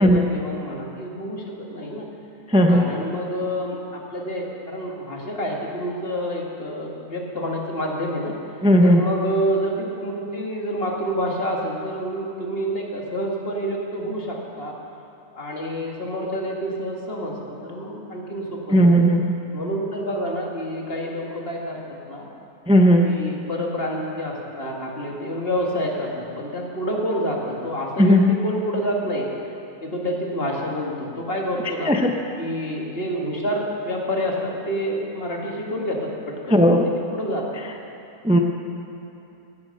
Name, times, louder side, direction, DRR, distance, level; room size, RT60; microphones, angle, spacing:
voice 1, 0.0-2.1 2.7-8.3 8.8-14.7 15.3-18.9 19.5-21.8 22.1-22.2 23.0-29.3 29.8-31.9 32.4-36.1 36.4-37.5, equal, 40° left, -1 dB, 2.1 m, -28 dB
voice 2, 2.5-2.8 8.6-9.0 18.7-19.2 22.7-23.1 28.0-28.3 31.8-32.1 36.5-36.8 38.2-38.4, equal, 5° right, 3 dB, 0.5 m, -15 dB
16.0 x 9.6 x 6.5 m, 2.9 s
omnidirectional pair, 1.6 m